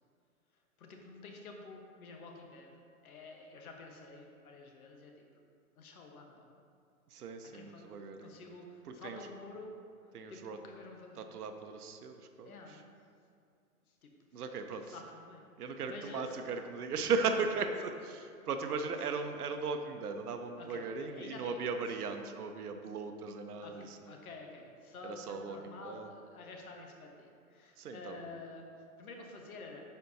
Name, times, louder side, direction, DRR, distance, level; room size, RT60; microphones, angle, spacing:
voice 1, 0.8-5.2 5.8-6.6 7.5-7.8 8.2-9.7 10.0-11.3 12.4-12.8 13.9-14.1 14.9-15.5 15.9-16.3 20.6-21.8 23.6-23.7 24.1-28.6 29.0-29.8, left 3 dB, 70° left, 2 dB, 1.3 m, -50 dB
voice 2, 7.1-8.4 8.8-9.3 10.1-10.6 11.2-12.8 14.3-15.0 15.6-24.1 25.0-26.1 27.8-28.3, right 4 dB, 85° right, 6 dB, 0.7 m, -37 dB
10.0 x 4.5 x 2.7 m, 2.4 s
hypercardioid pair, 155°, 44 cm